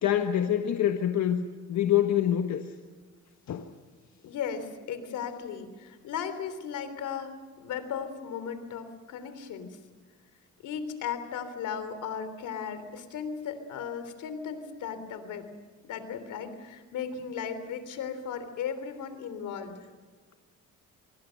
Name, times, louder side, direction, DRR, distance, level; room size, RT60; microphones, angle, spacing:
voice 1, 0.0-1.4 1.7-2.7 3.5-3.7, left 10 dB, 65° left, 6 dB, 1.5 m, -25 dB
voice 2, 4.2-9.8 10.6-15.5 15.8-19.9, left 7 dB, 85° left, 10 dB, 3.5 m, -36 dB
26.5 x 22.5 x 6.5 m, 1.4 s
cardioid pair, 90°, 30 cm